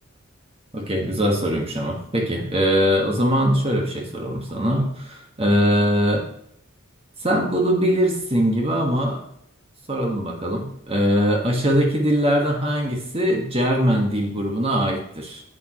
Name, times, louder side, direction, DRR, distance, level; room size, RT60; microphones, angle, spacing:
voice 1, 0.7-6.2 7.2-9.2 9.9-15.4, equal, 25° right, 0 dB, 1.7 m, -21 dB
10.5 x 8.8 x 3.1 m, 0.71 s
head